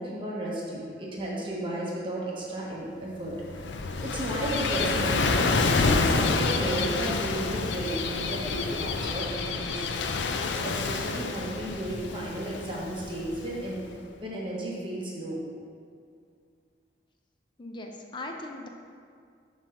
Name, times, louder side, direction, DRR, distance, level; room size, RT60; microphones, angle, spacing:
voice 1, 0.0-3.7 4.0-9.9 10.4-13.8 14.2-15.4, right 1 dB, 30° right, -5 dB, 0.9 m, -33 dB
Gull seagull / Waves surf, 3.3-13.8, left 4 dB, 80° left, 0.5 m, -28 dB
voice 2, 17.6-18.7, left 2 dB, 25° left, 2 dB, 0.5 m, -39 dB
7.4 x 3.2 x 5.6 m, 2.2 s
head